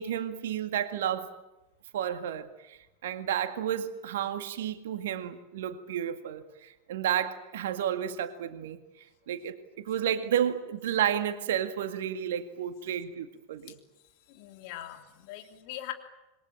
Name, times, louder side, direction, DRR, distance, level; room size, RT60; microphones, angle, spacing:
voice 1, 0.0-1.3 1.9-8.8 9.3-13.7, right 10 dB, 60° right, 2.1 m, -31 dB
voice 2, 14.3-15.9, left 13 dB, 50° left, 3.2 m, -41 dB
27.5 x 22.5 x 8.9 m
figure-of-eight pair, 85°, 0 cm